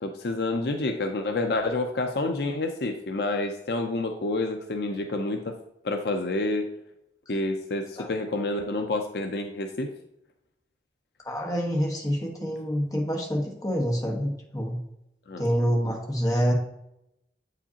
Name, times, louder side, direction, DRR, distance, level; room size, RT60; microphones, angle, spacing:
voice 1, 0.0-5.6 5.8-6.7 7.3-9.9 15.3-15.5, left 2 dB, 65° left, 5 dB, 0.5 m, -28 dB
voice 2, 11.2-14.8 15.4-16.5, equal, 20° left, 0 dB, 1.2 m, -27 dB
7.6 x 5.0 x 2.8 m, 0.82 s
head